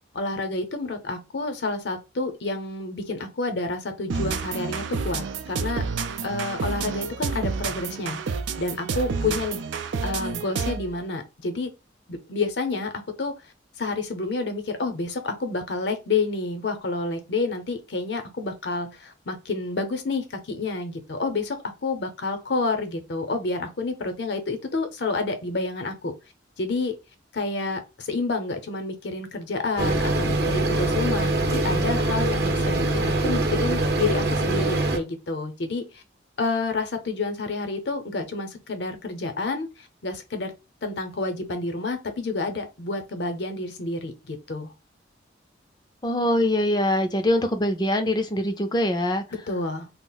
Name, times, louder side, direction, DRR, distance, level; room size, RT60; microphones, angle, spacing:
voice 1, 0.1-5.8 6.2-8.2 8.6-9.6 10.0-11.7 12.1-12.9 13.2-13.4 13.8-26.1 26.6-27.0 27.3-36.0 36.4-40.5 40.8-44.7 49.3-49.9, left 3 dB, 65° left, 0.6 m, -29 dB
sound 1, 4.1-11.0, right 5 dB, 75° right, 0.4 m, -29 dB
sound 2, 29.8-35.0, right 2 dB, 55° right, 0.7 m, -23 dB
voice 2, 46.0-49.2, left 1 dB, 20° left, 0.4 m, -23 dB
2.4 x 2.0 x 3.8 m
head